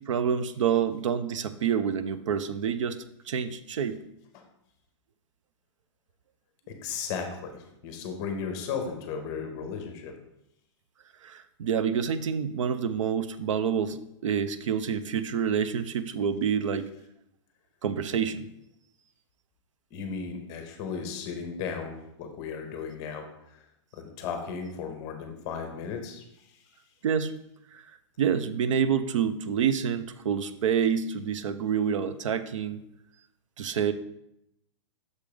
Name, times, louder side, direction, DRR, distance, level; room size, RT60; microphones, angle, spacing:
voice 1, 0.1-3.0 3.3-4.0 11.2-16.9 17.8-18.5 27.0-27.3 27.7-27.8 28.2-32.8 33.6-33.9, right 7 dB, 80° right, 12 dB, 0.5 m, -27 dB
voice 2, 6.7-10.1 19.9-23.3 23.5-23.6 23.9-26.2 26.5-26.6, left 6 dB, 25° left, 5 dB, 0.8 m, -35 dB
6.4 x 3.5 x 5.0 m, 0.80 s
hypercardioid pair, 170°, 16 cm